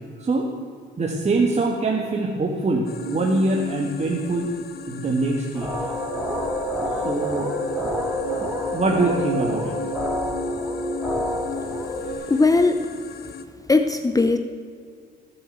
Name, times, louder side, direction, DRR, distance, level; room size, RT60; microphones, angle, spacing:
voice 1, 1.0-4.5 4.9-5.7 7.0-7.5 8.4-9.8 12.0-12.3, right 2 dB, 35° right, 0 dB, 1.8 m, -24 dB
sound 1, 2.9-13.5, left 7 dB, 50° left, 1.1 m, -37 dB
sound 2, 5.5-12.1, equal, ahead, 3.7 m, -27 dB
voice 2, 12.3-12.9 13.7-14.4, left 3 dB, 15° left, 8 dB, 0.8 m, -18 dB
17.0 x 8.0 x 8.0 m, 2.2 s
cardioid pair, 90°, 20 cm